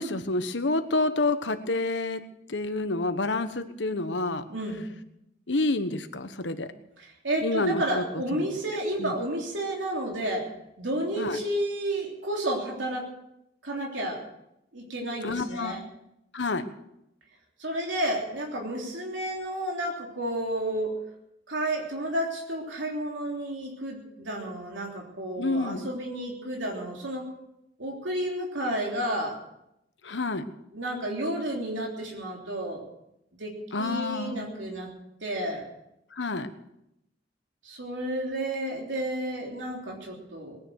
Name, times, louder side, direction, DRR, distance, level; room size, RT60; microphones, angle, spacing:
voice 1, 0.0-2.2 2.5-4.5 5.5-6.7 7.4-8.0 9.0-9.1 11.2-11.4 15.2-15.8 16.3-16.6 25.4-25.9 30.0-30.4 33.7-34.4 36.1-36.5, left 2 dB, 80° left, 9 dB, 1.2 m, -28 dB
voice 2, 4.5-4.9 7.0-10.5 10.8-13.1 13.6-14.2 14.7-15.8 17.6-20.9 21.5-27.3 27.8-29.4 30.7-32.8 33.4-33.5 33.8-34.9 35.2-35.6 37.6-40.6, right 1 dB, 90° right, -1 dB, 3.4 m, -31 dB
20.5 x 9.9 x 6.4 m, 0.82 s
head